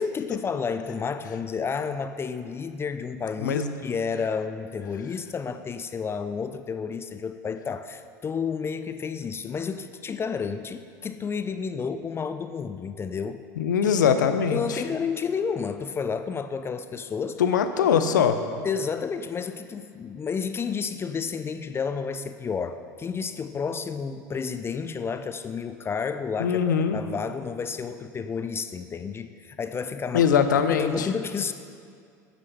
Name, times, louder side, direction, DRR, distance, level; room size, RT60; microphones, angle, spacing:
voice 1, 0.0-13.4 13.8-13.9 14.5-17.4 18.6-26.6 26.9-31.5, left 6 dB, 25° left, 10 dB, 0.4 m, -31 dB
voice 2, 3.4-3.7 13.6-14.8 17.4-18.4 26.4-27.0 30.1-31.1, left 7 dB, 85° left, 9 dB, 0.6 m, -22 dB
10.0 x 6.7 x 5.4 m, 2.3 s
hypercardioid pair, 85°, 10 cm